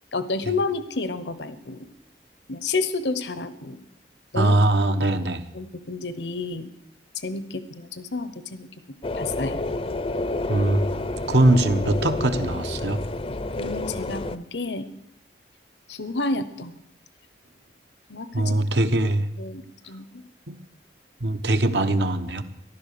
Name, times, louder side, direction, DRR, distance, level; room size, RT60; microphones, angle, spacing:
voice 1, 0.1-1.9 2.5-3.8 4.3-4.6 5.5-6.7 7.2-8.7 9.1-9.6 13.5-14.9 15.9-16.7 18.1-18.6 19.4-20.2, left 3 dB, 80° left, 13 dB, 1.0 m, -30 dB
voice 2, 4.3-5.4 10.5-13.0 18.3-19.3 20.5-20.6 21.2-22.4, right 1 dB, 75° right, 8 dB, 1.1 m, -21 dB
sound 1, 9.0-14.4, left 2 dB, 35° left, 0.6 m, -29 dB
14.5 x 11.5 x 6.8 m, 0.80 s
head